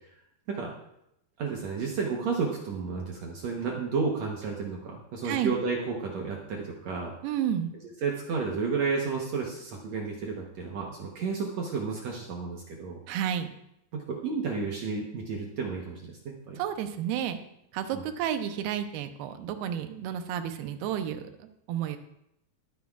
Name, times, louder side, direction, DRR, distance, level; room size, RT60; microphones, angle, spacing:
voice 1, 1.4-7.1 8.0-13.0 13.9-16.6 17.9-18.0, right 4 dB, 70° right, 0 dB, 1.7 m, -32 dB
voice 2, 7.2-7.7 13.1-13.5 16.6-17.4 17.7-22.0, right 9 dB, 90° right, 9 dB, 2.7 m, -31 dB
21.0 x 9.4 x 2.4 m, 0.80 s
omnidirectional pair, 4.4 m